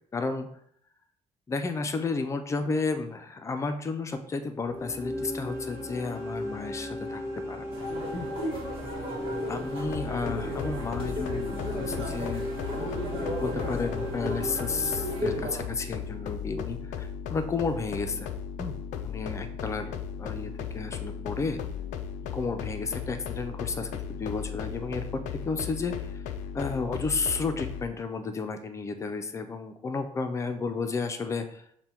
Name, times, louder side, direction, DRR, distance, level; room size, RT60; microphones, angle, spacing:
voice 1, 0.1-0.5 1.5-7.7 8.1-8.3 9.5-18.3 18.6-21.6 22.2-26.2 26.5-31.6, left 4 dB, 25° left, 7 dB, 0.4 m, -32 dB
sound 1, 4.6-15.9, left 1 dB, 20° right, 0.9 m, -37 dB
sound 2, 7.7-15.6, equal, 45° right, 1.4 m, -35 dB
sound 3, 9.8-27.9, left 7 dB, 85° left, 0.4 m, -36 dB
5.4 x 2.2 x 4.3 m, 0.68 s
cardioid pair, 130°, 12 cm